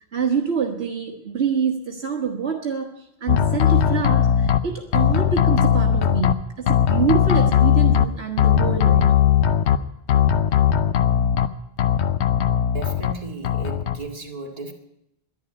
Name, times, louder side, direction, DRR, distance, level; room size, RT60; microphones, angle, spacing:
voice 1, 0.1-2.9 3.2-9.1, right 6 dB, 65° right, 1 dB, 1.6 m, -26 dB
sound 1, 3.3-4.6 4.9-6.3 6.7-8.1 8.4-9.8 10.1-11.5 11.8-13.1 13.4-14.0, left 9 dB, 75° left, 1.0 m, -18 dB
voice 2, 12.7-14.7, right 2 dB, 35° right, 0 dB, 2.1 m, -35 dB
11.0 x 11.0 x 9.7 m, 0.83 s
omnidirectional pair, 1.1 m